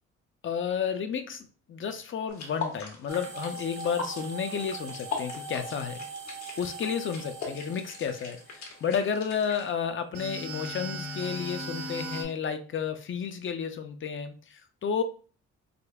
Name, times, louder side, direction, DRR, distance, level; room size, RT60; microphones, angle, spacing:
voice 1, 0.4-6.0 6.6-15.0, left 7 dB, 40° left, 8 dB, 0.5 m, -32 dB
sound 1, 2.3-9.7, left 4 dB, 70° left, 1.1 m, -40 dB
sound 2, 3.1-9.1 10.1-12.2, right 2 dB, 75° right, 1.1 m, -40 dB
5.0 x 2.0 x 2.3 m, 0.39 s
cardioid pair, 90°, 30 cm